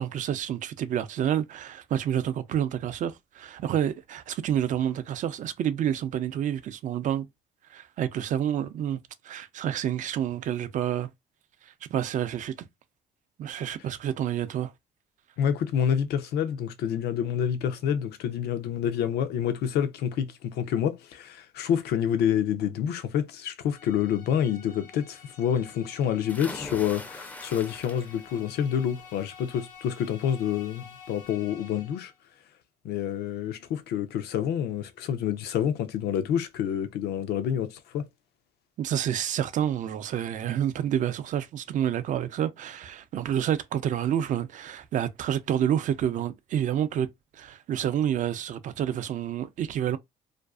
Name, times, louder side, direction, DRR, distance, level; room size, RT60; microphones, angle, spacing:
voice 1, 0.0-7.3 7.7-9.0 9.2-11.1 11.6-12.7 13.4-14.7 38.8-47.1 47.3-50.0, right 10 dB, 50° right, 0.4 m, -29 dB
voice 2, 15.4-32.1 32.8-38.1, left 9 dB, 75° left, 0.5 m, -28 dB
sound 1, 23.7-32.2, left 6 dB, 90° left, 1.1 m, -50 dB
sound 2, 26.3-28.4 28.8-29.2 30.6-30.7 31.1-31.2, left 2 dB, 10° left, 0.5 m, -41 dB
2.5 x 2.3 x 2.3 m
cardioid pair, 110°, 17 cm